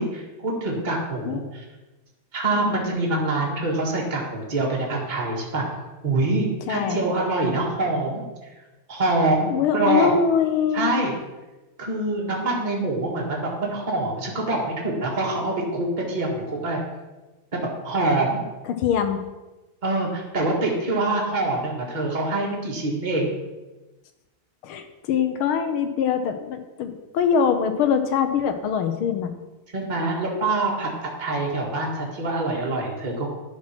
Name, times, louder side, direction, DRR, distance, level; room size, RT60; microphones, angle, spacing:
voice 1, 0.0-1.6 2.3-5.7 6.0-8.2 8.9-10.1 10.7-11.2 11.8-16.8 17.8-18.4 19.8-23.3 29.7-33.4, right 2 dB, 20° right, -3 dB, 1.8 m, -25 dB
voice 2, 2.6-2.9 6.7-7.0 9.5-10.9 18.7-19.2 24.6-29.3, left 7 dB, 80° left, 8 dB, 1.7 m, -23 dB
11.0 x 4.5 x 6.1 m, 1.1 s
omnidirectional pair, 2.3 m